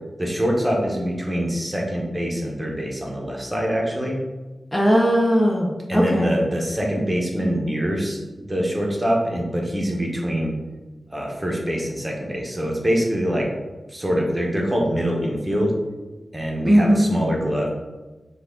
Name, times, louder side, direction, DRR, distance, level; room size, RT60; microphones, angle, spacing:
voice 1, 0.2-4.2 5.9-10.5 11.1-13.5 13.9-15.7 16.3-17.7, equal, 15° right, -1 dB, 0.8 m, -24 dB
voice 2, 4.7-6.3 16.6-17.1, equal, 15° left, -3 dB, 0.5 m, -18 dB
5.9 x 2.4 x 3.6 m, 1.2 s
wide cardioid pair, 135°, 0 cm